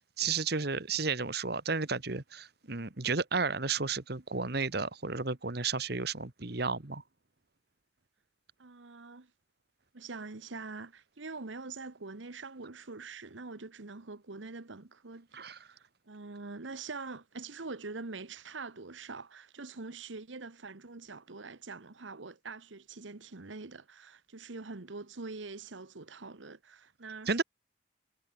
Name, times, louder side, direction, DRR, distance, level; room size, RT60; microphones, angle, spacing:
voice 1, 0.2-7.0 15.3-15.6 27.3-27.4, right 4 dB, 55° right, 1.5 m, -32 dB
voice 2, 8.6-9.3 9.9-27.4, right 3 dB, 85° right, 1.2 m, -44 dB
head